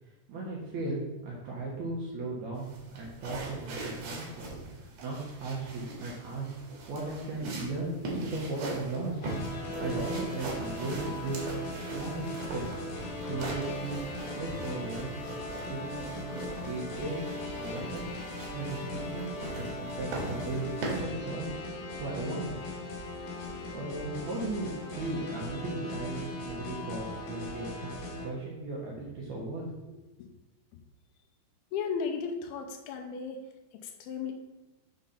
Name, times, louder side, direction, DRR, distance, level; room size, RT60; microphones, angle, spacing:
voice 1, 0.3-4.5 5.0-6.5 6.9-9.2 9.8-12.6 13.1-14.0 14.3-15.2 15.7-18.1 18.5-20.6 20.9-21.4 21.9-22.6 23.7-27.9 28.2-29.6, right 2 dB, 80° right, -4 dB, 1.6 m, -37 dB
sound 1, 2.6-21.0, right 2 dB, 60° right, 2.2 m, -41 dB
sound 2, 9.2-28.3, left 1 dB, 60° left, 2.8 m, -38 dB
voice 2, 31.7-33.4 33.8-34.3, left 6 dB, 80° left, 5 dB, 2.3 m, -35 dB
6.5 x 3.9 x 5.7 m, 1.1 s
omnidirectional pair, 4.9 m